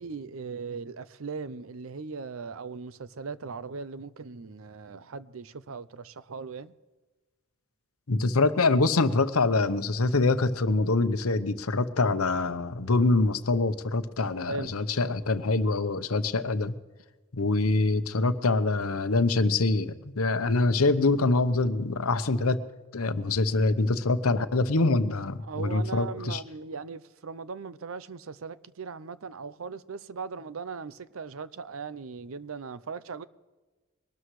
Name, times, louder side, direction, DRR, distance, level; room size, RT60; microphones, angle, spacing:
voice 1, 0.0-6.7 14.5-14.7 25.4-33.2, right 4 dB, 70° right, 0.6 m, -38 dB
voice 2, 8.1-16.7 17.3-22.6 22.9-26.4, left 3 dB, 80° left, 0.9 m, -25 dB
22.5 x 12.5 x 3.2 m
head